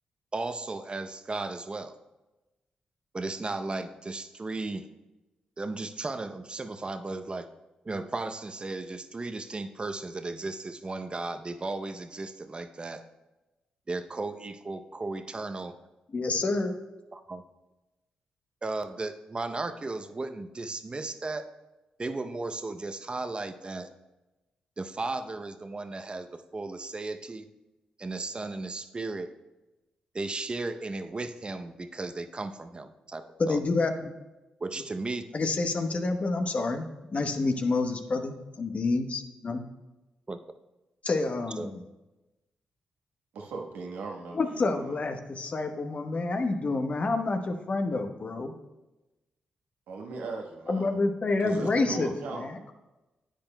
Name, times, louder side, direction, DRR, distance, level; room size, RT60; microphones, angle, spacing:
voice 1, 0.3-1.9 3.1-4.9 5.6-7.5 7.8-13.0 13.9-15.8 17.1-17.4 18.6-21.5 22.0-23.9 24.8-27.5 28.0-29.3 30.1-33.6 34.6-35.2 40.3-40.4 41.6-41.7, right 3 dB, 35° right, 9 dB, 0.7 m, -35 dB
voice 2, 16.1-16.7 33.4-34.1 35.3-36.9 37.1-39.6 41.0-41.8 44.3-48.5 50.7-52.7, left 3 dB, 45° left, 6 dB, 0.9 m, -28 dB
voice 3, 43.3-45.0 49.9-50.9 51.4-52.5, right 3 dB, 80° right, 1 dB, 1.2 m, -38 dB
10.0 x 8.6 x 2.2 m, 1.1 s
supercardioid pair, 45°, 3 cm